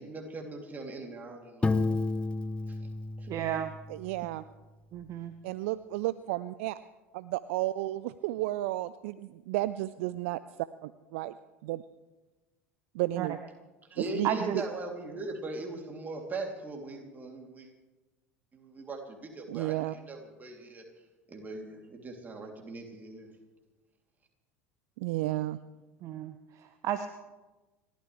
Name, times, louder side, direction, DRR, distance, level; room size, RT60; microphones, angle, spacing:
voice 1, 0.0-1.8 2.7-2.8 3.2-3.3 13.9-17.7 18.5-20.8 21.3-23.3, right 2 dB, 20° right, 2 dB, 3.0 m, -40 dB
Piano, 1.6-4.4, left 3 dB, 15° left, 0.8 m, -31 dB
voice 2, 3.3-3.7 4.9-5.3 13.2-13.4 14.2-14.6 26.0-27.1, right 10 dB, 45° right, 10 dB, 0.9 m, -33 dB
voice 3, 3.9-4.4 5.4-6.8 7.1-10.4 10.8-11.3 11.6-11.8 12.9-13.3 14.0-14.3 19.5-20.0 25.0-25.6, right 17 dB, 60° right, 16 dB, 0.4 m, -32 dB
30.0 x 13.5 x 3.3 m, 1.2 s
figure-of-eight pair, 75°, 8 cm